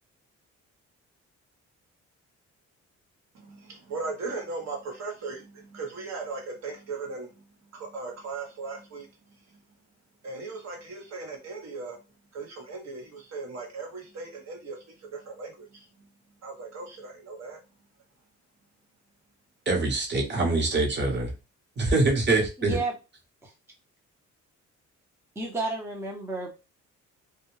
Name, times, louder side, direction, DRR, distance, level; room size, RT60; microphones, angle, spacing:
voice 1, 3.3-9.6 10.2-12.0 12.3-16.1 16.4-17.6, right 3 dB, 60° right, 1 dB, 1.1 m, -38 dB
voice 2, 19.7-21.3 21.8-22.8, right 2 dB, 35° right, 1 dB, 1.0 m, -24 dB
voice 3, 22.6-22.9 23.4-23.5 25.4-26.5, right 2 dB, 10° right, -1 dB, 0.6 m, -31 dB
2.2 x 2.1 x 3.1 m, 0.29 s
cardioid pair, 90°, 30 cm